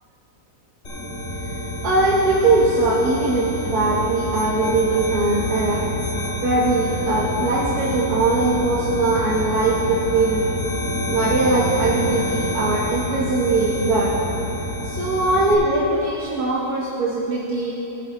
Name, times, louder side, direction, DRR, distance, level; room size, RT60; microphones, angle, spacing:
sound 1, 0.8-15.5, equal, 45° left, 2.0 m, -27 dB
voice 1, 1.8-5.8 6.4-10.5 11.1-14.1 14.8-17.7, right 2 dB, 85° right, -6 dB, 1.6 m, -21 dB
18.0 x 8.3 x 3.0 m, 2.9 s
omnidirectional pair, 1.6 m